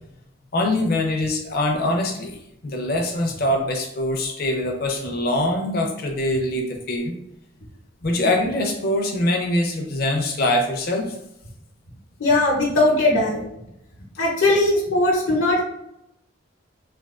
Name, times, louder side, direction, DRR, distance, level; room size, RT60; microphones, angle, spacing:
voice 1, 0.5-7.1 8.0-11.2, left 1 dB, 50° left, 1 dB, 0.5 m, -23 dB
voice 2, 12.2-13.5 14.2-15.6, left 2 dB, 75° left, -3 dB, 0.8 m, -19 dB
3.4 x 2.3 x 2.4 m, 0.80 s
head